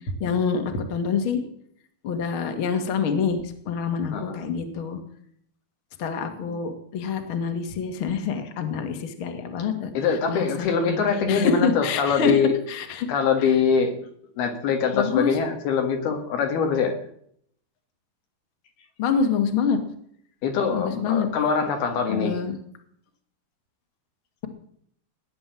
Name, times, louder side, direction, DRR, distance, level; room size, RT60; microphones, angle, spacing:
voice 1, 0.2-1.4 2.0-5.0 6.0-9.9 10.3-11.0 11.3-12.4 12.7-13.1 14.9-15.4 19.0-19.8 20.7-21.3 22.1-22.6, left 6 dB, 40° left, 6 dB, 2.2 m, -26 dB
voice 2, 4.1-4.4 6.3-6.6 10.0-12.6 13.0-13.9 14.4-16.9 20.4-22.4, left 6 dB, 75° left, 4 dB, 3.9 m, -23 dB
18.0 x 10.5 x 7.7 m, 0.67 s
omnidirectional pair, 4.5 m